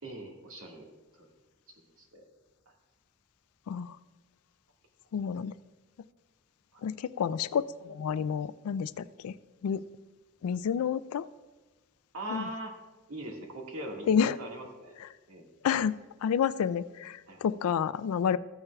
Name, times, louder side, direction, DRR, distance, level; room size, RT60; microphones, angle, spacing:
voice 1, 0.0-0.9 1.1-1.3 2.0-2.2 2.7-2.8 6.7-6.8 12.1-12.8 13.1-15.0 15.3-15.5 17.3-17.4, right 1 dB, 70° right, 0 dB, 1.8 m, -41 dB
voice 2, 5.1-5.5 6.8-9.3 9.6-9.8 10.4-11.3 12.3-12.5 14.1-14.4 15.6-15.9 16.2-18.4, left 7 dB, 80° left, 16 dB, 0.3 m, -29 dB
15.0 x 8.8 x 2.3 m, 1.2 s
head